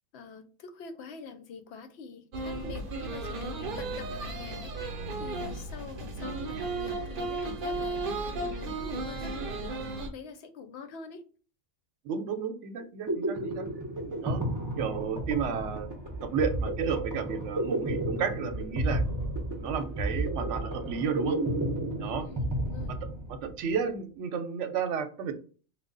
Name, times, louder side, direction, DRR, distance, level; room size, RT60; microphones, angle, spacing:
voice 1, 0.1-4.9 5.2-11.2 22.2-23.0, left 5 dB, 70° left, 7 dB, 0.8 m, -45 dB
sound 1, 2.3-10.1, right 2 dB, 55° right, 0.8 m, -34 dB
voice 2, 12.0-13.7 14.2-14.4 14.8-15.9 16.2-19.0 19.6-21.4 22.0-22.3 23.4-25.3, right 6 dB, 85° right, 8 dB, 0.9 m, -32 dB
sound 2, 12.8-23.6, right 1 dB, 20° right, 0.5 m, -32 dB
3.1 x 2.1 x 3.8 m, 0.39 s
omnidirectional pair, 1.2 m